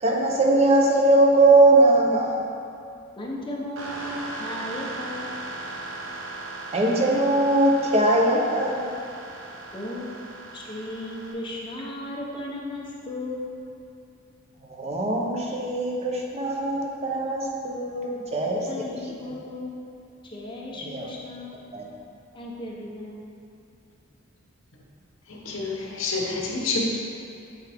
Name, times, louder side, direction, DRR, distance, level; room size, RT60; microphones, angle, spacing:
voice 1, 0.0-2.4 6.7-9.0 14.7-18.7 20.8-21.1 21.7-21.9, right 2 dB, 30° right, -1 dB, 0.7 m, -20 dB
voice 2, 3.2-5.4 9.7-13.5 18.7-21.6 22.3-23.2, left 1 dB, 25° left, -4 dB, 0.9 m, -36 dB
sound 1, 3.8-11.3, right 2 dB, 80° right, 0.9 m, -38 dB
voice 3, 25.3-26.8, left 4 dB, 75° left, -2 dB, 0.9 m, -28 dB
9.0 x 3.5 x 3.5 m, 2.7 s
head